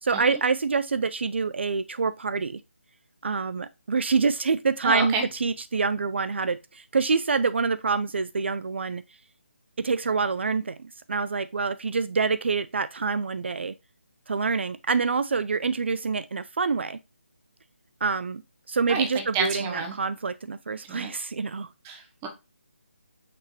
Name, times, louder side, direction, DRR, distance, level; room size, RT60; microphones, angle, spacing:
voice 1, 0.0-2.6 3.2-9.0 9.8-13.7 14.3-17.0 18.0-18.4 18.7-21.7, right 4 dB, 60° right, 0.3 m, -26 dB
voice 2, 4.8-5.2 18.9-19.1 19.3-20.0 20.9-21.1 21.8-22.3, right 4 dB, 10° right, 0.6 m, -29 dB
5.8 x 3.2 x 2.7 m
figure-of-eight pair, 165°, 7 cm